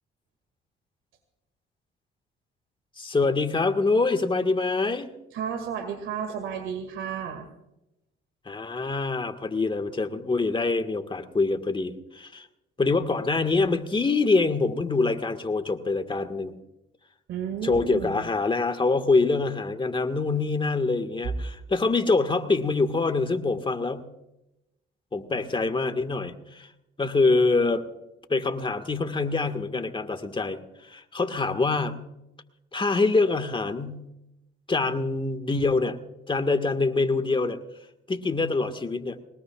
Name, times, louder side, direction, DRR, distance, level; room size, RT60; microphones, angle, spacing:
voice 1, 3.0-5.1 8.5-12.5 12.8-16.5 17.6-24.1 25.1-26.7 27.0-27.8 28.3-32.0 32.7-34.0 34.7-36.0 36.3-37.6 38.1-39.2, left 3 dB, 25° left, 8 dB, 1.7 m, -25 dB
voice 2, 5.3-7.5 17.3-18.3, right 7 dB, 85° right, 6 dB, 2.2 m, -32 dB
22.0 x 20.0 x 2.4 m, 0.88 s
cardioid pair, 90°, 20 cm